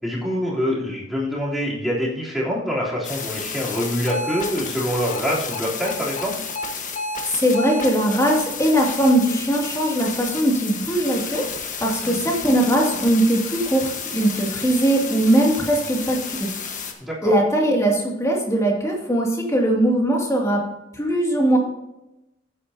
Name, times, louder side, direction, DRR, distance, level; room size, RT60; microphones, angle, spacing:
voice 1, 0.0-6.3 12.0-12.2 17.0-17.3, equal, ahead, -7 dB, 3.3 m, -25 dB
sound 1, 3.0-16.9, left 5 dB, 45° left, 1.4 m, -31 dB
voice 2, 7.2-11.4 11.8-16.5 17.2-20.6 20.9-21.6, right 1 dB, 15° left, -1 dB, 2.4 m, -20 dB
14.5 x 8.6 x 2.8 m, 0.92 s
head